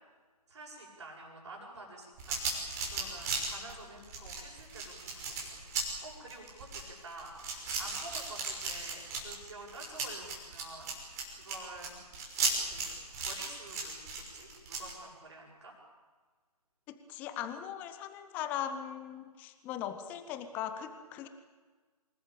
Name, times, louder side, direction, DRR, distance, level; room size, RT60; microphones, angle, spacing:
voice 1, 0.5-2.4 2.9-5.6 6.0-10.9 11.4-11.9 12.7-12.8 13.2-15.8, right 2 dB, 45° right, -7 dB, 7.5 m, -49 dB
sound 1, 2.2-14.9, right 4 dB, 25° right, 6.2 m, -36 dB
voice 2, 16.9-21.3, left 9 dB, 10° left, 10 dB, 0.8 m, -39 dB
27.0 x 20.0 x 8.9 m, 1.4 s
figure-of-eight pair, 150°, 20 cm